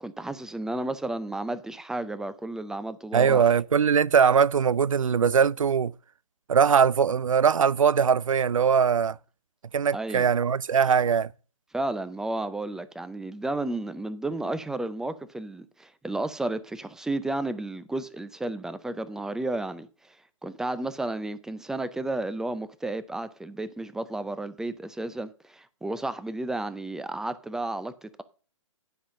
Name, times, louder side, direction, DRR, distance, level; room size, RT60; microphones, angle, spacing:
voice 1, 0.0-3.4 9.9-10.3 11.7-20.2 20.4-28.2, right 2 dB, 5° right, 0.4 m, -32 dB
voice 2, 3.1-5.9 6.5-9.2 9.7-11.3, right 7 dB, 85° right, 0.4 m, -21 dB
10.0 x 5.6 x 6.1 m
figure-of-eight pair, 130°, 17 cm